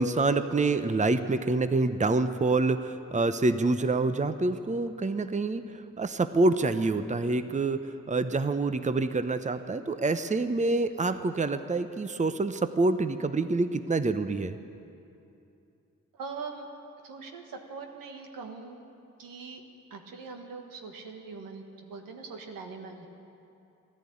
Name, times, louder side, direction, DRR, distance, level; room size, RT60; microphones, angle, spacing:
voice 1, 0.0-5.6 6.0-14.6, right 3 dB, 20° right, 11 dB, 0.8 m, -26 dB
voice 2, 16.2-16.7 17.0-18.8 19.2-19.6 19.9-23.1, right 4 dB, 80° right, 4 dB, 1.5 m, -42 dB
14.5 x 11.5 x 8.6 m, 2.7 s
supercardioid pair, 45°, 33 cm